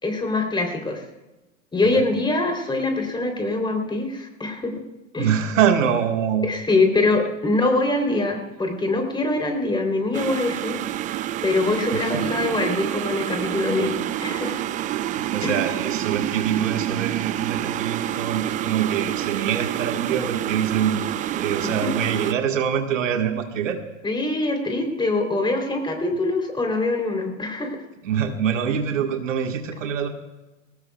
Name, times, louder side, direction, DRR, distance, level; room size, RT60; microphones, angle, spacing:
voice 1, 0.0-1.0 1.7-4.7 5.1-5.3 6.4-10.8 11.4-14.6 15.4-15.6 21.8-21.9 24.0-27.8, left 2 dB, 10° left, 3 dB, 3.3 m, -23 dB
voice 2, 5.2-6.5 11.9-12.3 14.9-23.8 28.0-30.1, right 8 dB, 70° right, 5 dB, 1.6 m, -25 dB
sound 1, 10.1-22.3, right 12 dB, 20° right, 0.5 m, -28 dB
20.5 x 18.5 x 2.3 m, 1.1 s
hypercardioid pair, 100°, 40 cm